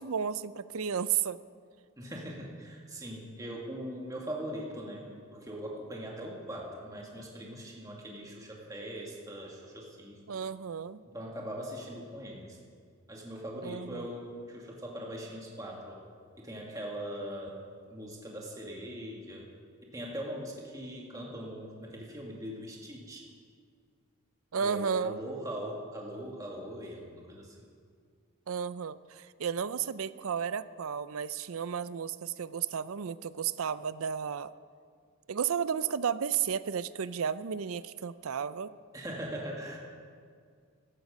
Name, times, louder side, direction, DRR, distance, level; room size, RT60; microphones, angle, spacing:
voice 1, 0.0-1.4 10.3-11.0 13.6-14.1 24.5-25.2 28.5-34.5 35.3-38.7, right 7 dB, 75° right, 16 dB, 0.5 m, -33 dB
voice 2, 2.0-10.2 11.1-12.6 13.1-16.0 16.4-17.6 17.9-19.4 19.8-23.2 24.6-27.6 38.9-39.8, equal, 15° right, -2 dB, 1.9 m, -41 dB
15.5 x 12.0 x 5.2 m, 2.1 s
head